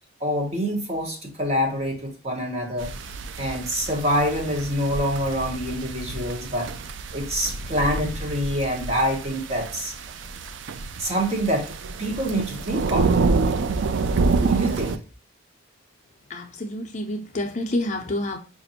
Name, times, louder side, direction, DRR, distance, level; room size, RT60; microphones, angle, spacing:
voice 1, 0.2-2.9 3.4-6.7 7.1-9.9 11.0-11.7 12.0-13.2 14.4-15.0, equal, 30° right, 0.9 m, -26 dB
sound 1, 2.8-15.0, right 4 dB, 60° right, 0.3 m, -27 dB
voice 2, 16.3-18.4, left 1 dB, 35° left, 0.5 m, -28 dB
5.0 x 2.5 x 2.6 m
head